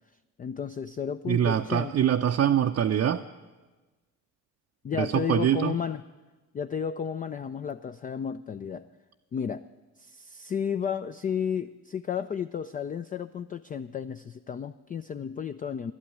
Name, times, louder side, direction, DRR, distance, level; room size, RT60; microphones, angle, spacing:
voice 1, 0.4-2.1 4.8-6.0 6.5-8.9 9.3-9.6 10.0-15.9, left 7 dB, 20° left, 11 dB, 0.3 m, -33 dB
voice 2, 1.3-3.2 5.0-5.8, right 9 dB, 35° right, 4 dB, 0.6 m, -24 dB
11.5 x 8.9 x 9.2 m, 1.2 s
hypercardioid pair, 50°, 44 cm